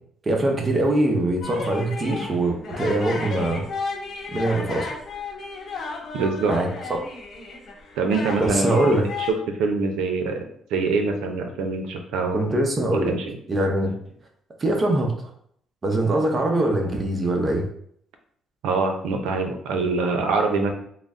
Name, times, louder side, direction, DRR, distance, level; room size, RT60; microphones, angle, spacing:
voice 1, 0.3-3.6 4.3-4.9 6.5-6.7 8.4-9.0 12.3-13.2 13.5-13.9 14.6-15.3 15.8-17.7, right 1 dB, 30° right, 2 dB, 0.8 m, -22 dB
sound 1, 1.4-9.3, left 4 dB, 55° left, 0.9 m, -33 dB
voice 2, 6.1-6.6 8.0-9.0 9.5-10.4 10.7-12.4 13.1-13.2 18.6-20.7, right 4 dB, 90° right, 5 dB, 0.6 m, -24 dB
3.8 x 2.1 x 3.6 m, 0.66 s
cardioid pair, 110°, 0 cm